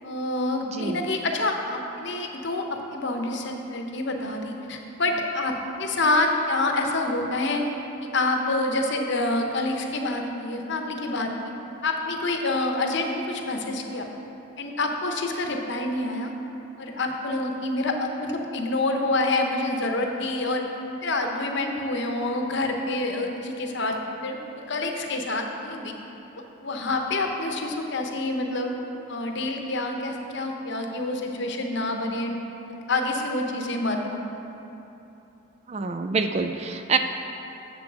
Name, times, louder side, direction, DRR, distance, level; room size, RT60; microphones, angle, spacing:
voice 1, 0.0-7.6 8.1-11.5 11.8-14.1 14.6-16.3 16.8-20.7 21.0-25.9 26.6-28.7 29.1-32.4 32.7-34.2, left 2 dB, 55° left, 3 dB, 0.8 m, -27 dB
voice 2, 0.6-1.1 35.7-37.0, right 4 dB, 30° right, 6 dB, 0.3 m, -26 dB
7.6 x 7.2 x 6.0 m, 3.0 s
head